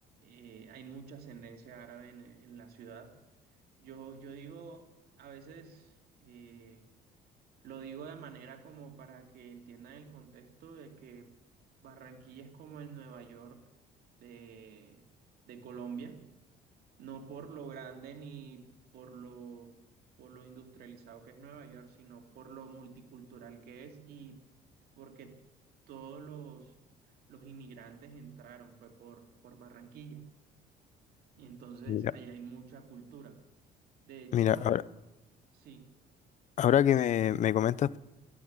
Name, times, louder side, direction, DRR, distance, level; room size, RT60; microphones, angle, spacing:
voice 1, 0.2-3.2 3.8-4.9 5.2-6.9 7.6-11.4 11.8-13.7 14.2-15.1 15.5-16.2 17.0-19.8 20.2-24.4 25.0-25.4 25.9-26.8 27.3-30.3 31.4-33.4 34.1-34.8 35.5-35.9, right 6 dB, 70° right, 2.5 m, -48 dB
voice 2, 34.3-34.8 36.6-38.0, left 10 dB, 45° left, 0.5 m, -25 dB
13.5 x 12.0 x 8.7 m
cardioid pair, 110°, 17 cm